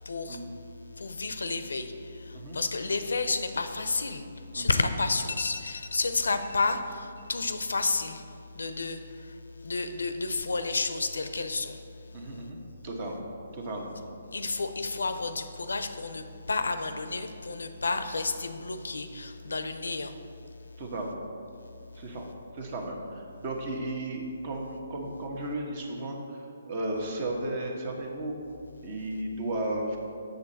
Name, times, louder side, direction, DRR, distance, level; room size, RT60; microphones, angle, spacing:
voice 1, 0.0-0.4 1.0-4.3 4.5-8.2 8.5-9.3 9.6-11.8 14.3-20.1, left 3 dB, 80° left, 9 dB, 0.5 m, -31 dB
voice 2, 12.1-12.6 12.8-13.3 13.5-13.9 20.8-21.2 22.0-22.3 22.5-28.4 28.8-30.0, right 1 dB, 40° right, 1 dB, 1.2 m, -34 dB
6.9 x 6.6 x 4.1 m, 2.5 s
figure-of-eight pair, 145°, 0 cm